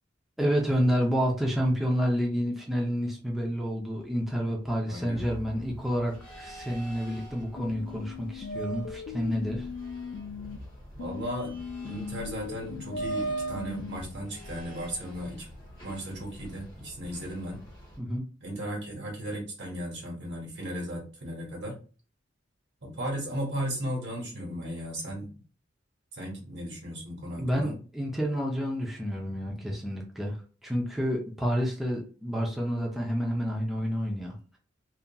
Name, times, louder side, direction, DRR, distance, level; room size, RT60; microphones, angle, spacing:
voice 1, 0.4-9.7 18.0-18.2 27.4-30.4 30.6-34.3, equal, ahead, -2 dB, 0.4 m, -29 dB
voice 2, 4.9-5.2 10.9-11.5 11.8-15.5 15.8-17.6 18.4-21.8 22.8-25.3 26.1-27.7, equal, 65° right, -1 dB, 1.1 m, -36 dB
sound 1, 5.1-18.0, right 2 dB, 25° left, 1.5 m, -41 dB
sound 2, 7.6-10.6 11.0-14.0, left 7 dB, 80° left, 0.3 m, -40 dB
2.9 x 2.4 x 2.2 m, 0.37 s
head